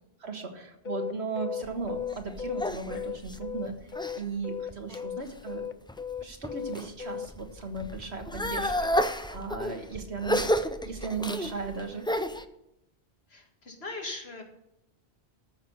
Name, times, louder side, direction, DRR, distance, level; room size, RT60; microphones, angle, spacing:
voice 1, 0.2-5.7 6.2-10.5 10.8-12.1, right 4 dB, 80° right, 5 dB, 1.8 m, -36 dB
sound 1, 0.8-4.2 4.4-7.3, left 8 dB, 50° left, 0.7 m, -35 dB
sound 2, 1.6-4.2 4.7-5.3 5.9-6.9 7.3-12.4, equal, 10° left, 0.3 m, -31 dB
voice 2, 13.3-14.4, left 3 dB, 70° left, 3 dB, 2.1 m, -39 dB
13.5 x 6.3 x 6.7 m, 0.85 s
omnidirectional pair, 1.1 m